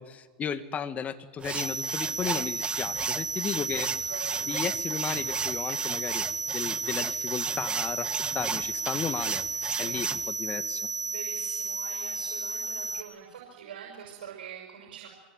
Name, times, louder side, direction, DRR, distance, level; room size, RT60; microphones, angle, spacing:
voice 1, 0.0-4.1 4.5-6.3 6.5-8.1 8.3-9.4 9.8-10.9, left 7 dB, 25° left, 10 dB, 2.2 m, -34 dB
sound 1, 1.4-10.3, right 6 dB, 20° right, 1.1 m, -35 dB
sound 2, 1.6-13.0, right 4 dB, 5° right, 1.9 m, -33 dB
voice 2, 4.1-4.4 9.6-10.0 11.1-15.1, right 8 dB, 75° right, 0 dB, 6.3 m, -44 dB
27.0 x 24.0 x 9.2 m, 1.2 s
hypercardioid pair, 100°, 5 cm